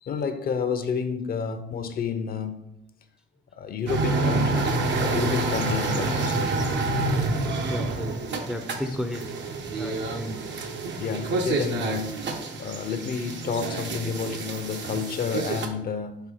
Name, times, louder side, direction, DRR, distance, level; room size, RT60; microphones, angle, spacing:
voice 1, 0.0-2.6 3.5-6.6 11.0-12.2 12.6-16.2, left 6 dB, 45° left, 0.6 m, -30 dB
sound 1, 3.9-15.7, right 3 dB, 60° right, 0.9 m, -28 dB
voice 2, 5.1-5.5 7.7-8.2 8.5-9.3 9.7-10.4, left 1 dB, 5° right, 0.5 m, -33 dB
5.7 x 3.4 x 4.8 m
cardioid pair, 105°, 20 cm